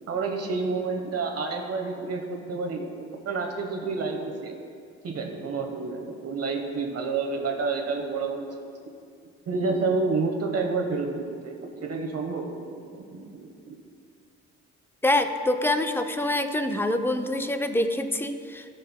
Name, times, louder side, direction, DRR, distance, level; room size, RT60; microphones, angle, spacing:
voice 1, 0.1-4.6 5.0-8.7 9.5-12.6 12.9-13.7, right 4 dB, 50° right, 3 dB, 1.1 m, -29 dB
voice 2, 15.0-18.6, left 1 dB, 5° left, 7 dB, 0.5 m, -25 dB
14.0 x 5.3 x 2.2 m, 2.3 s
supercardioid pair, 70°, 30 cm